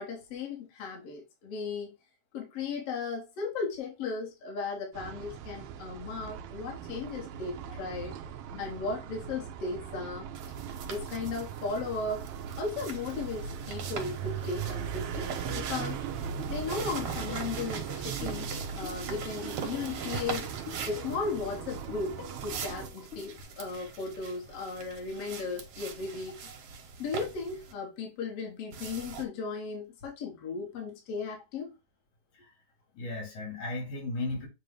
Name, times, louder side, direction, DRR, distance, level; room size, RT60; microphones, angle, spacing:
voice 1, 0.0-1.9 2.3-8.1 8.6-10.3 10.8-12.3 12.6-16.0 16.5-18.5 18.8-20.5 20.9-26.4 27.0-31.7, left 4 dB, 60° left, 2.6 m, -36 dB
sound 1, 4.9-22.9, right 8 dB, 85° right, 1.3 m, -39 dB
sound 2, 10.3-27.7 28.7-29.2, right 6 dB, 65° right, 2.0 m, -42 dB
sound 3, 15.0-23.4, left 8 dB, 30° left, 1.3 m, -48 dB
voice 2, 32.9-34.5, left 2 dB, 85° left, 3.9 m, -36 dB
7.5 x 2.7 x 4.9 m
omnidirectional pair, 3.4 m